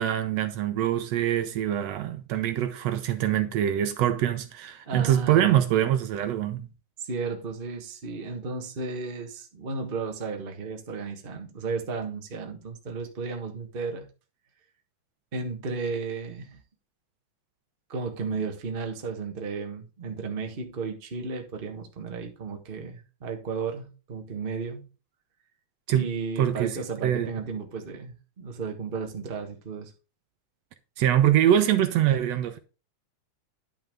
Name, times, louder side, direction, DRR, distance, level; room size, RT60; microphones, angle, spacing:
voice 1, 0.0-6.7 25.9-26.1 26.4-26.8 27.0-27.3 31.0-32.6, right 11 dB, 70° right, 1.8 m, -24 dB
voice 2, 4.8-5.6 7.0-14.1 15.3-16.6 17.9-24.8 25.9-29.9, right 4 dB, 45° right, 0.7 m, -34 dB
10.5 x 5.8 x 3.5 m
omnidirectional pair, 3.4 m